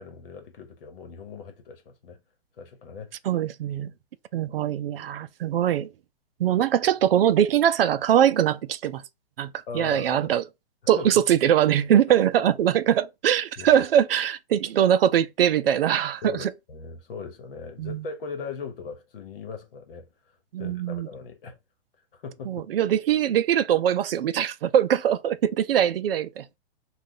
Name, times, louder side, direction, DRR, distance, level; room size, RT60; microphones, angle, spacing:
voice 1, 0.0-2.2 2.6-3.1 9.7-10.3 10.8-11.1 11.9-12.2 13.6-13.7 16.2-20.1 20.6-21.6 22.1-22.6, left 5 dB, 60° left, 1.2 m, -39 dB
voice 2, 3.2-3.9 4.3-5.9 6.4-9.0 9.4-10.4 10.9-16.5 17.8-18.0 20.5-21.1 22.5-26.5, right 10 dB, 65° right, 0.5 m, -22 dB
3.7 x 2.4 x 3.8 m
hypercardioid pair, 165°, 31 cm